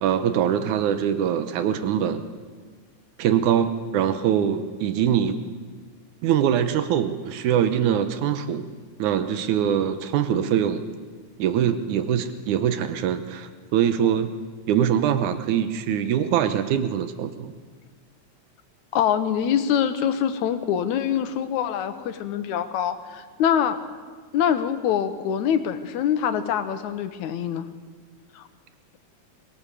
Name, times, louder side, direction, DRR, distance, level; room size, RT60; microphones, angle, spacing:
voice 1, 0.0-2.2 3.2-5.4 6.2-8.7 9.0-10.8 11.4-14.3 14.7-17.5, right 9 dB, 85° right, 10 dB, 2.4 m, -23 dB
voice 2, 18.9-23.8 24.3-27.7 28.4-28.5, left 9 dB, 85° left, 10 dB, 2.4 m, -24 dB
23.0 x 18.0 x 6.9 m, 1.5 s
omnidirectional pair, 3.3 m